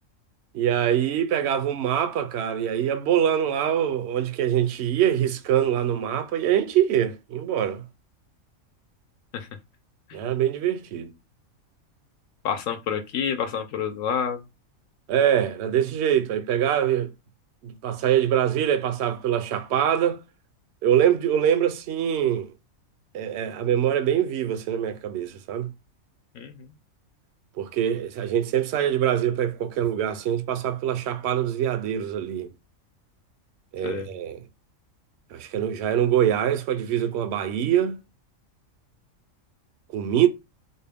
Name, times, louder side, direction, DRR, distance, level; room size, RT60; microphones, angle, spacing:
voice 1, 0.5-7.8 10.1-11.1 15.1-17.1 17.6-20.2 20.8-22.5 23.1-25.7 27.6-32.5 33.7-34.4 35.3-38.0 39.9-40.3, right 10 dB, 65° right, 0.8 m, -24 dB
voice 2, 12.4-14.4 26.3-26.7 33.8-34.1, left 7 dB, 75° left, 1.0 m, -28 dB
4.2 x 2.1 x 3.4 m
omnidirectional pair, 1.4 m